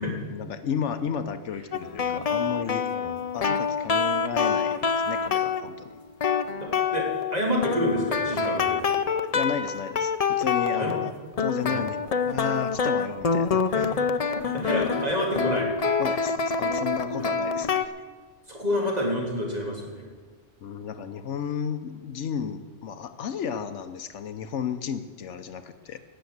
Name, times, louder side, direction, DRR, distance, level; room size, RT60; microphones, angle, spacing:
voice 1, 0.0-2.8 3.3-5.9 9.3-11.1 11.4-12.0 12.2-13.9 16.0-17.9 20.6-26.0, left 7 dB, 75° left, 10 dB, 1.1 m, -33 dB
sound 1, 1.7-5.7 6.2-7.3 7.6-11.1 11.4-17.9, left 6 dB, 45° left, 0.5 m, -26 dB
voice 2, 6.6-8.9 10.8-10.9 11.6-11.8 13.7-13.8 14.3-15.7 17.1-17.3 18.5-20.0, equal, 35° right, -2 dB, 3.4 m, -28 dB
18.5 x 7.2 x 7.9 m, 1.4 s
omnidirectional pair, 1.3 m